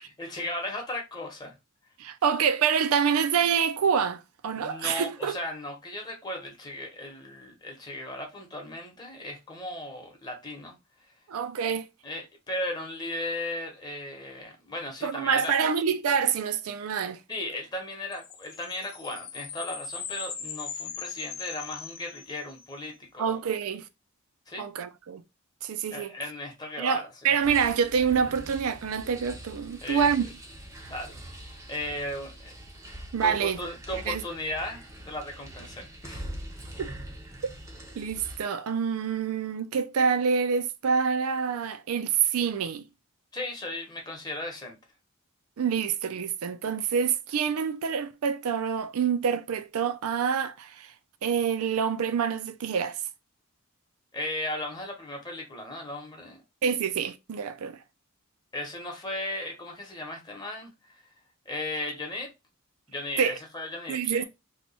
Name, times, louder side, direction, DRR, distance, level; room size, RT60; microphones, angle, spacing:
voice 1, 0.2-1.5 4.5-10.8 12.0-15.6 17.3-23.4 24.5-24.7 25.9-27.3 29.8-30.1 30.9-31.2 31.7-36.3 43.3-44.8 54.1-56.4 58.5-61.0 61.5-62.3 62.9-64.2, left 1 dB, 20° left, 0.9 m, -36 dB
voice 2, 2.0-5.4 11.3-11.8 15.0-17.2 23.2-23.8 24.6-25.2 25.6-26.1 26.8-30.3 33.1-33.6 34.1-34.2 36.8-36.9 38.0-42.8 45.6-50.9 51.2-53.0 56.6-57.8 63.2-63.4 63.9-64.2, right 7 dB, 80° right, 0.4 m, -26 dB
sound 1, 18.1-22.7, left 7 dB, 60° left, 0.7 m, -39 dB
sound 2, 27.4-38.4, right 1 dB, 15° right, 0.5 m, -43 dB
2.9 x 2.2 x 4.0 m
head